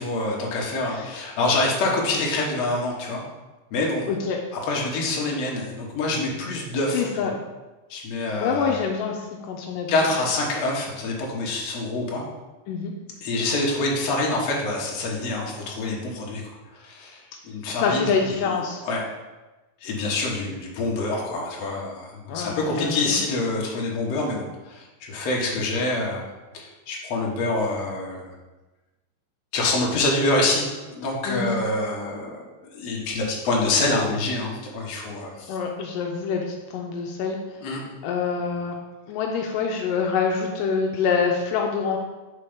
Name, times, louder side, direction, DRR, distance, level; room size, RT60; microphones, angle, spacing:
voice 1, 0.0-3.2 3.7-4.1 4.5-7.3 7.9-8.8 9.9-12.2 13.2-16.4 16.8-18.1 18.4-18.5 18.8-19.0 19.8-26.2 26.5-28.3 29.5-32.5 32.7-35.6 37.6-37.8, left 2 dB, 60° left, -2 dB, 2.2 m, -26 dB
voice 2, 4.1-4.4 6.9-7.3 8.4-9.9 12.7-12.9 17.7-18.8 22.3-23.2 31.3-31.6 35.5-37.4 38.0-38.8 39.1-42.0, left 5 dB, 85° left, 1 dB, 2.2 m, -26 dB
5.8 x 4.5 x 5.1 m, 1.1 s
omnidirectional pair, 3.8 m